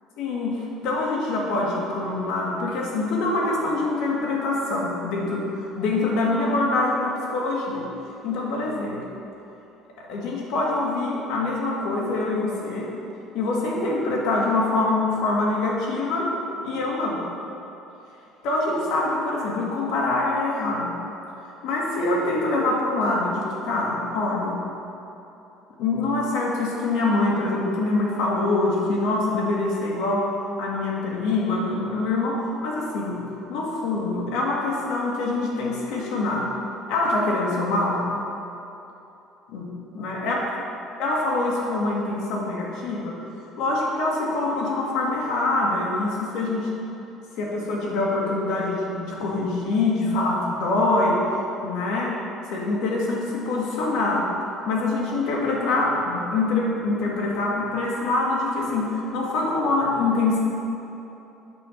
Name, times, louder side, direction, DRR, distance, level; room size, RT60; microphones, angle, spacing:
voice 1, 0.2-7.9 8.2-9.0 10.0-12.9 13.3-16.4 16.6-17.2 18.4-21.0 21.6-24.6 25.8-30.3 30.6-36.5 36.9-38.0 39.5-40.4 41.0-43.2 43.6-46.7 47.4-51.2 51.6-52.2 52.5-54.3 54.7-60.4, left 2 dB, 70° left, -3 dB, 2.1 m, -25 dB
8.3 x 5.5 x 6.8 m, 2.9 s
cardioid pair, 140°, 0 cm